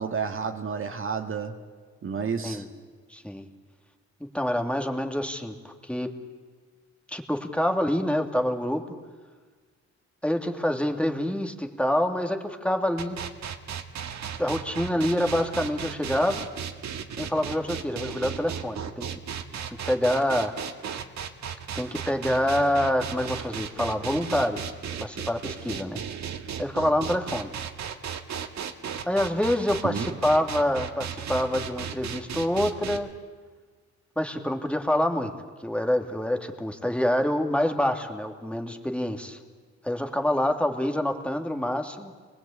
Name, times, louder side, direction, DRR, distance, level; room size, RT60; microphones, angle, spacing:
voice 1, 0.0-1.6 2.0-2.7 29.8-30.2, right 6 dB, 45° right, 2.0 m, -30 dB
voice 2, 3.1-3.5 4.2-6.1 7.1-8.8 10.2-13.2 14.4-16.5 17.2-19.1 19.7-20.5 21.7-24.6 25.0-26.0 26.6-27.5 29.0-33.1 34.2-35.3 35.6-39.4 39.8-42.1, left 1 dB, 5° left, 2.4 m, -26 dB
sound 1, 13.0-33.0, right 8 dB, 65° right, 1.9 m, -35 dB
26.0 x 20.0 x 8.6 m
cardioid pair, 90°, 30 cm